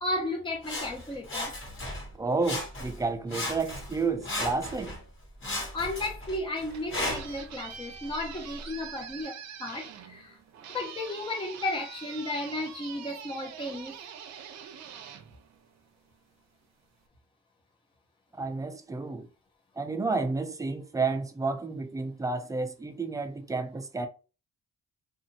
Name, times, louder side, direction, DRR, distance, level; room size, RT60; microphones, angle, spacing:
voice 1, 0.0-1.5 5.7-10.4 10.7-13.9, left 1 dB, 15° left, 0.8 m, -34 dB
Sawing, 0.6-2.1 2.4-3.0 3.3-5.0 5.4-7.4 8.1-8.2, left 2 dB, 40° left, 1.4 m, -35 dB
voice 2, 2.2-4.9 18.4-19.3 19.8-24.1, right 3 dB, 10° right, 0.4 m, -31 dB
sound 1, 6.5-16.1, right 8 dB, 60° right, 0.6 m, -45 dB
2.7 x 2.4 x 2.6 m
cardioid pair, 90°, 30 cm